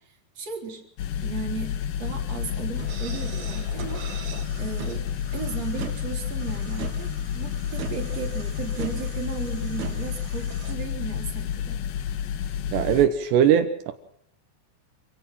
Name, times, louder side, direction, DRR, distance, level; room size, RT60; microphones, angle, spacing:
voice 1, 0.4-0.8 1.2-4.0 4.6-5.1 5.3-11.8, right 5 dB, 40° right, 1 dB, 4.6 m, -35 dB
sound 1, 1.0-13.1, left 9 dB, 65° left, 2.8 m, -30 dB
sound 2, 2.4-10.7, right 7 dB, 65° right, 4.1 m, -40 dB
voice 2, 12.7-13.9, right 9 dB, 80° right, 7 dB, 3.4 m, -20 dB
27.0 x 17.0 x 5.9 m, 0.66 s
omnidirectional pair, 4.9 m